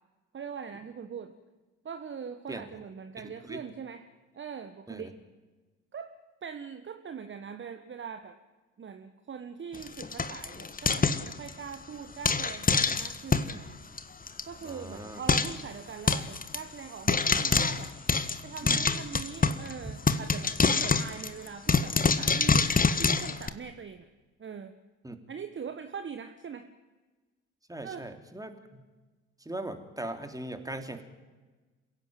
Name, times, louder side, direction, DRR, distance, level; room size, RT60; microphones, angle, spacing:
voice 1, 0.3-1.3 1.8-4.0 4.3-5.2 5.9-6.1 6.4-8.4 8.8-13.8 14.5-17.9 18.4-22.7 23.0-24.1 24.4-24.7 25.3-26.7 27.8-28.1, right 7 dB, 30° right, 8 dB, 1.4 m, -42 dB
voice 2, 3.2-3.6 4.9-5.1 14.6-15.2 18.6-18.8 19.8-19.9 25.0-25.2 27.7-28.8 29.4-31.0, right 1 dB, 10° right, 7 dB, 3.2 m, -39 dB
Frying (food), 9.7-11.7 12.2-13.6 14.0-14.1 14.3-14.4 14.7-14.8 15.3-15.6 16.1-16.6 17.1-19.7 20.1-23.5, left 4 dB, 20° left, 1.5 m, -26 dB
28.5 x 16.5 x 9.4 m, 1.3 s
figure-of-eight pair, 50°, 38 cm